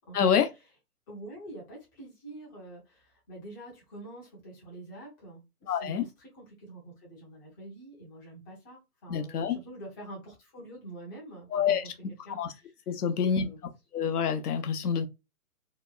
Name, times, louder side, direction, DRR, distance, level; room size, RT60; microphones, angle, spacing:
voice 1, 0.1-0.5 5.7-6.1 9.1-9.6 11.5-11.8 12.3-12.5 12.9-13.5 13.9-15.1, left 7 dB, 75° left, 0.7 m, -27 dB
voice 2, 1.1-13.6, right 2 dB, 15° left, 0.6 m, -46 dB
2.9 x 2.1 x 2.2 m
hypercardioid pair, 150°, 46 cm